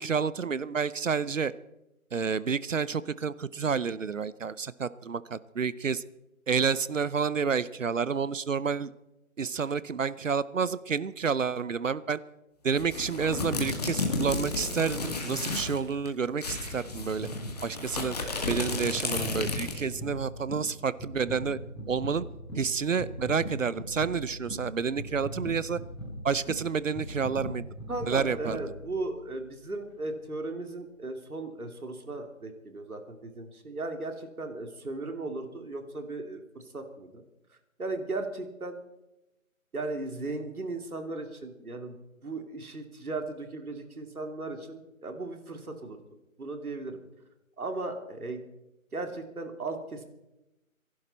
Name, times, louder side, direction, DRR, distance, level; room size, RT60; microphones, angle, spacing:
voice 1, 0.0-1.5 2.1-6.0 6.5-8.9 9.4-12.2 12.6-17.3 17.6-18.2 18.4-21.6 21.9-22.2 22.6-25.8 26.2-27.6 28.0-28.6, right 6 dB, 60° right, 18 dB, 0.7 m, -29 dB
sound 1, 12.8-15.8 16.1-16.2 16.4-19.9, left 3 dB, 30° left, 2.0 m, -33 dB
sound 2, 16.9-29.3 29.9-30.0, equal, ahead, 0.9 m, -40 dB
voice 2, 27.9-37.2 37.8-38.8 39.7-46.0 46.4-47.0 47.6-48.4 48.9-50.0, right 2 dB, 85° right, 5 dB, 3.0 m, -36 dB
25.0 x 11.5 x 4.3 m, 0.95 s
figure-of-eight pair, 170°, 43 cm